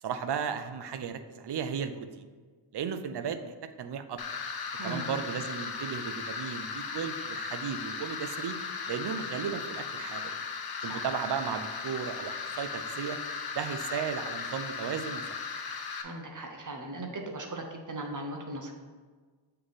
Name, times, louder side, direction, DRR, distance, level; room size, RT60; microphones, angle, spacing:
voice 1, 0.0-2.3 2.7-4.2 4.8-8.6 8.9-10.4 10.8-13.2 13.5-15.4, right 7 dB, 60° right, 9 dB, 0.5 m, -35 dB
sound 1, 4.2-16.0, left 5 dB, 55° left, 0.7 m, -37 dB
voice 2, 16.0-18.7, right 2 dB, 40° right, 2 dB, 0.9 m, -38 dB
7.6 x 3.3 x 4.0 m, 1.5 s
wide cardioid pair, 85°, 46 cm